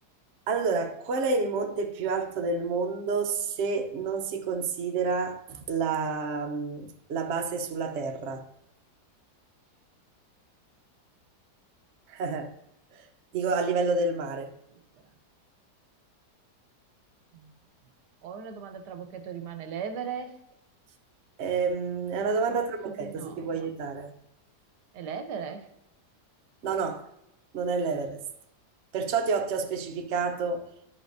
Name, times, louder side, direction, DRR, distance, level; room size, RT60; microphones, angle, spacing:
voice 1, 0.5-8.5 12.1-12.5 13.3-14.5 21.4-24.1 26.6-27.1 27.5-28.2 28.9-30.6, right 4 dB, 55° right, 0.9 m, -29 dB
voice 2, 18.2-20.4 22.2-22.6 22.8-23.5 24.9-25.7, right 6 dB, 90° right, 1.4 m, -38 dB
10.5 x 5.2 x 2.6 m
omnidirectional pair, 1.7 m